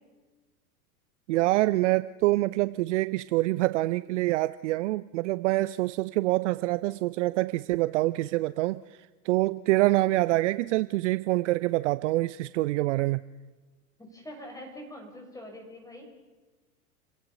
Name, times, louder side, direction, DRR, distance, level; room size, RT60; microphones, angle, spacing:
voice 1, 1.3-8.8 9.2-13.2, right 19 dB, 50° right, 0.6 m, -26 dB
voice 2, 14.0-16.1, left 1 dB, 5° left, 6.6 m, -44 dB
29.5 x 16.5 x 5.7 m
figure-of-eight pair, 95°, 47 cm